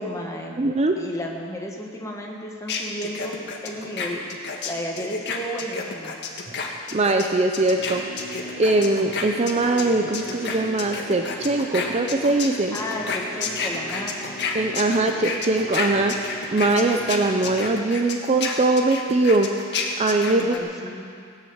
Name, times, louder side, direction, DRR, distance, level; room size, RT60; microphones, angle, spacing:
voice 1, 0.0-0.6 1.0-3.4 3.6-4.2 4.6-6.1 12.7-14.3 20.3-21.1, equal, 15° left, -1 dB, 1.8 m, -33 dB
voice 2, 0.6-1.0 6.5-6.6 6.9-8.1 8.5-12.8 14.5-16.2 16.5-19.5 20.0-20.6, right 2 dB, 30° right, 5 dB, 0.6 m, -21 dB
sound 1, 2.7-9.9 10.1-20.6, left 5 dB, 55° left, 1.6 m, -30 dB
sound 2, 7.6-17.9, equal, 10° right, 1.9 m, -38 dB
17.5 x 9.8 x 7.2 m, 2.4 s
head